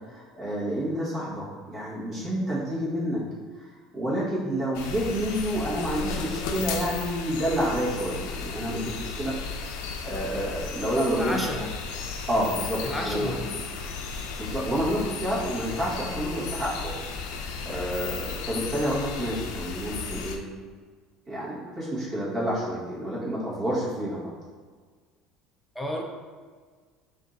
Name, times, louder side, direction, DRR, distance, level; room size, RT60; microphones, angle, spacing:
voice 1, 0.1-3.2 3.9-9.3 10.0-11.6 12.3-13.3 14.4-16.9 17.6-20.4 21.3-24.3, equal, 25° right, -7 dB, 1.2 m, -29 dB
sound 1, 4.7-20.4, left 5 dB, 85° left, 0.4 m, -34 dB
voice 2, 11.2-11.7 12.8-13.6 25.7-26.0, left 1 dB, 5° left, 0 dB, 0.5 m, -31 dB
3.6 x 2.6 x 3.8 m, 1.6 s
cardioid pair, 150°, 0 cm